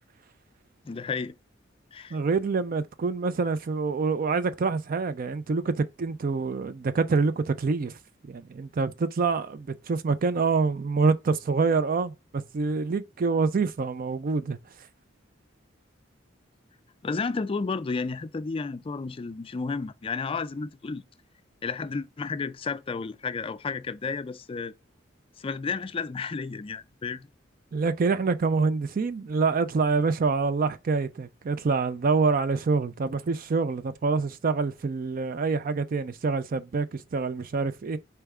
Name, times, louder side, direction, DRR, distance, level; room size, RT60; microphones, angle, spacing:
voice 1, 0.8-1.4 1.9-2.2 17.0-21.0 21.6-24.7 25.4-27.3, left 4 dB, 30° left, 0.3 m, -32 dB
voice 2, 2.1-8.0 8.3-14.6 27.7-38.0, right 4 dB, 45° right, 0.4 m, -26 dB
4.4 x 3.4 x 3.5 m
head